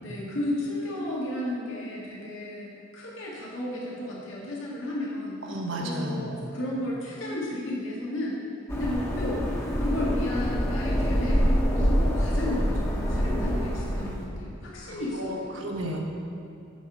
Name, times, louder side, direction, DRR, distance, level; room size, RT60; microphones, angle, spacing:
voice 1, 0.0-5.4 5.8-8.4 8.8-9.5 9.8-15.6, left 1 dB, 85° left, -5 dB, 1.8 m, -33 dB
voice 2, 5.5-6.3 14.8-16.0, right 1 dB, 80° right, 0 dB, 1.2 m, -33 dB
sound 1, 8.7-14.2, equal, 15° left, 0.9 m, -25 dB
8.5 x 4.9 x 6.1 m, 2.5 s
head